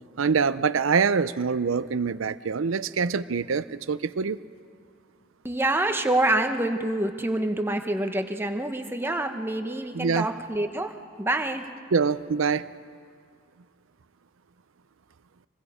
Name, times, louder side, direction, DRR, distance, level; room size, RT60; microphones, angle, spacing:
voice 1, 0.2-4.4 9.9-10.3 11.9-12.7, right 5 dB, 85° right, 15 dB, 0.5 m, -25 dB
voice 2, 5.4-10.9 11.2-11.6, right 1 dB, 10° right, 5 dB, 1.0 m, -26 dB
26.5 x 21.0 x 5.0 m, 2.1 s
head